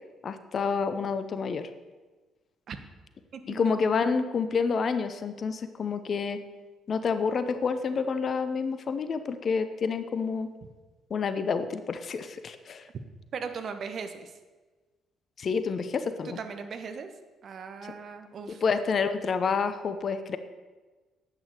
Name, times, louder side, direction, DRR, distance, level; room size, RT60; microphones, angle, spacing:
voice 1, 0.2-1.7 3.5-6.4 6.9-10.5 11.1-12.8 15.4-16.4 18.6-20.4, left 5 dB, 45° left, 11 dB, 0.9 m, -28 dB
voice 2, 3.3-3.8 13.3-14.4 16.2-17.1 17.4-18.6, right 5 dB, 50° right, 8 dB, 1.2 m, -38 dB
10.5 x 8.8 x 6.7 m, 1.3 s
figure-of-eight pair, 45°, 0 cm